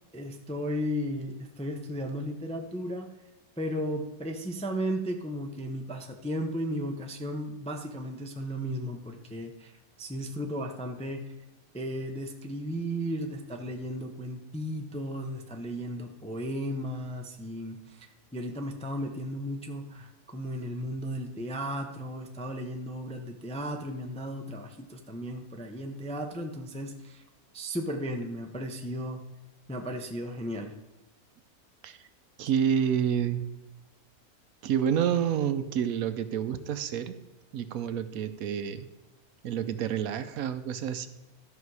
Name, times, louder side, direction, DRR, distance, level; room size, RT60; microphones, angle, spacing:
voice 1, 0.1-3.1 3.6-9.7 10.0-11.3 11.7-27.2 27.5-29.2 29.7-30.7, equal, 10° left, 3 dB, 0.4 m, -35 dB
voice 2, 32.4-33.4 34.6-37.2 37.5-38.9 39.4-41.1, right 8 dB, 75° right, 11 dB, 1.1 m, -28 dB
13.0 x 5.9 x 4.8 m, 1.0 s
omnidirectional pair, 1.6 m